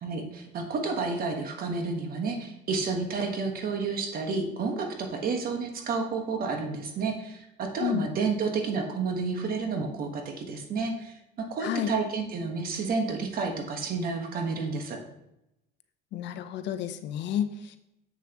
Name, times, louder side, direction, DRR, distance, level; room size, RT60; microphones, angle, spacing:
voice 1, 0.0-15.0, right 4 dB, 50° right, 4 dB, 1.4 m, -30 dB
voice 2, 11.6-11.9 16.1-17.8, left 10 dB, 65° left, 10 dB, 0.7 m, -31 dB
7.5 x 6.9 x 2.9 m, 0.86 s
cardioid pair, 115°, 20 cm